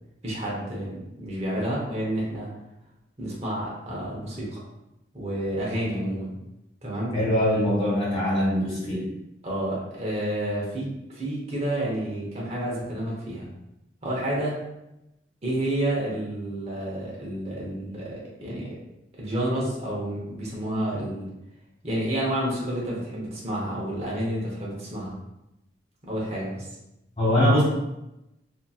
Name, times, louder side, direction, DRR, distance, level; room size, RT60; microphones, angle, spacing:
voice 1, 0.2-2.5 3.2-4.6 5.1-6.4 6.8-7.1 9.4-13.5 14.0-14.6 15.4-18.7 19.2-21.3 21.8-25.2 26.0-26.7, right 1 dB, 35° right, -5 dB, 0.8 m, -30 dB
voice 2, 7.1-9.0 27.2-27.6, left 1 dB, 30° left, -8 dB, 1.5 m, -22 dB
2.8 x 2.6 x 2.3 m, 0.90 s
head